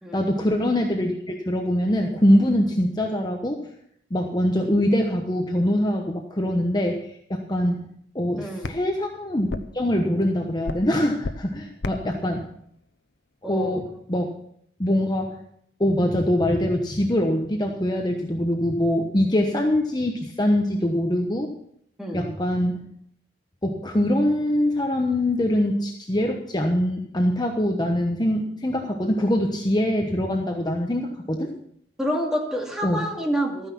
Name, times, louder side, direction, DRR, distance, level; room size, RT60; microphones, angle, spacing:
voice 1, 0.1-3.6 4.1-7.0 7.3-9.5 9.7-12.5 13.4-14.3 14.8-15.4 15.8-21.5 22.1-22.9 23.6-31.5 32.8-33.0, left 1 dB, 25° left, 2 dB, 1.1 m, -23 dB
sound 1, 7.6-14.0, left 2 dB, 90° left, 0.8 m, -38 dB
voice 2, 8.4-8.7 13.4-13.8 22.0-22.3 32.0-33.7, equal, 5° right, 0 dB, 2.4 m, -28 dB
13.5 x 9.7 x 5.9 m, 0.69 s
head